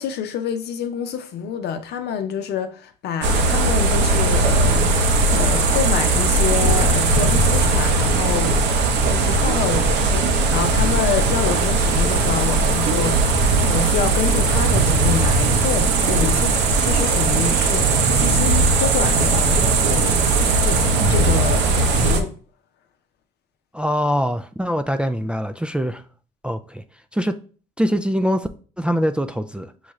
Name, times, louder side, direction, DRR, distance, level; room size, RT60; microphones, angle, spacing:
voice 1, 0.0-8.6 9.0-20.8 21.1-22.3, left 7 dB, 65° left, 0.7 m, -27 dB
sound 1, 3.2-22.2, right 3 dB, 70° right, 0.8 m, -18 dB
voice 2, 23.7-26.0 26.4-26.8 27.1-27.3 27.8-28.5 28.8-29.7, equal, 5° right, 0.4 m, -23 dB
6.2 x 2.3 x 3.1 m
hypercardioid pair, 60°, 18 cm